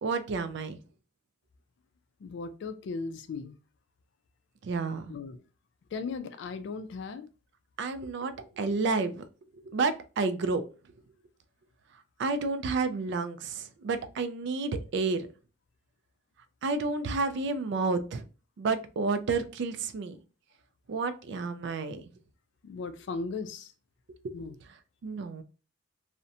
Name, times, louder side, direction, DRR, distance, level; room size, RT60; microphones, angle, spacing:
voice 1, 0.0-0.8 4.6-5.1 7.8-9.2 9.7-10.6 12.2-15.3 16.6-18.2 18.6-20.2 20.9-22.0 24.2-24.3 25.0-25.4, right 4 dB, 60° right, 0.3 m, -30 dB
voice 2, 2.2-3.6 5.1-5.4 5.9-7.3 22.6-23.7 24.3-24.6, left 4 dB, 60° left, 0.3 m, -37 dB
2.6 x 2.1 x 2.5 m
head